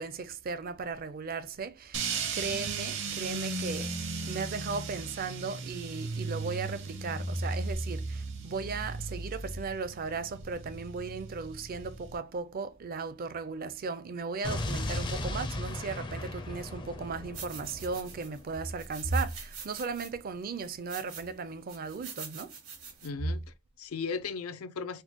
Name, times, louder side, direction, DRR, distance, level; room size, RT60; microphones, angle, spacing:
voice 1, 0.0-2.0 2.3-3.9 4.2-22.5, right 4 dB, 45° right, 0.4 m, -36 dB
sound 1, 1.9-12.2, right 3 dB, 60° right, 0.8 m, -36 dB
Explosion, 14.4-18.5, left 1 dB, 20° left, 0.4 m, -36 dB
sound 2, 17.3-18.4 18.8-20.1 20.6-21.3 21.7-23.1, right 6 dB, 90° right, 2.2 m, -45 dB
voice 2, 23.0-25.0, left 5 dB, 85° left, 0.5 m, -37 dB
4.5 x 2.1 x 2.8 m
head